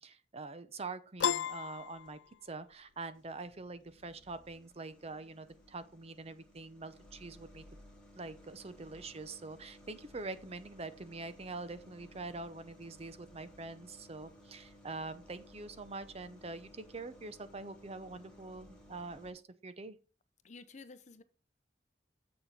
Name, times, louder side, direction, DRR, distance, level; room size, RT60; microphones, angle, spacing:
voice 1, 0.0-7.6 8.2-20.0, right 3 dB, 35° right, 0.7 m, -45 dB
Piano, 1.2-2.7, left 8 dB, 75° left, 0.4 m, -34 dB
sound 1, 1.5-2.2 2.7-19.3, left 1 dB, 5° left, 2.3 m, -59 dB
voice 2, 20.4-21.2, left 4 dB, 40° left, 0.7 m, -51 dB
7.6 x 6.6 x 4.1 m
head